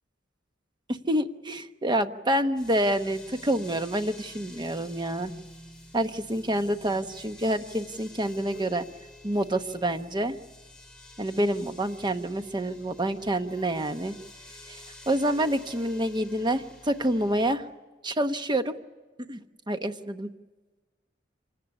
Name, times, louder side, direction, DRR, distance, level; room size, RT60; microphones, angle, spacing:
voice 1, 0.9-5.3 5.9-8.8 9.2-10.4 11.2-14.1 14.7-14.8 15.1-17.6 18.0-18.7 19.3-19.4 19.7-20.3, right 1 dB, 25° right, 8 dB, 1.0 m, -27 dB
sound 1, 2.5-17.5, left 1 dB, 5° left, 5.8 m, -49 dB
27.0 x 18.5 x 9.8 m, 1.3 s
head